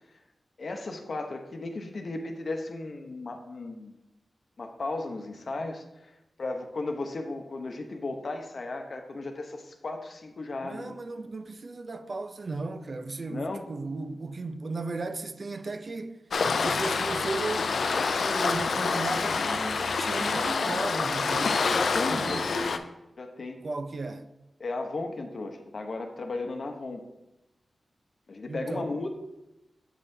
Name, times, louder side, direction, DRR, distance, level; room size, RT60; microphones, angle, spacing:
voice 1, 0.6-4.0 4.6-6.1 6.4-11.0 13.3-13.6 21.7-22.8 23.2-23.6 24.6-27.0 28.3-29.1, left 2 dB, 60° left, 0.8 m, -35 dB
voice 2, 10.6-16.3 16.6-17.7 18.1-21.7 22.1-22.5 23.6-24.3 28.5-28.9, right 3 dB, 50° right, 0.4 m, -35 dB
Waves surf, 16.3-22.8, left 4 dB, 80° left, 0.4 m, -27 dB
8.2 x 5.5 x 2.7 m
wide cardioid pair, 80°, 0 cm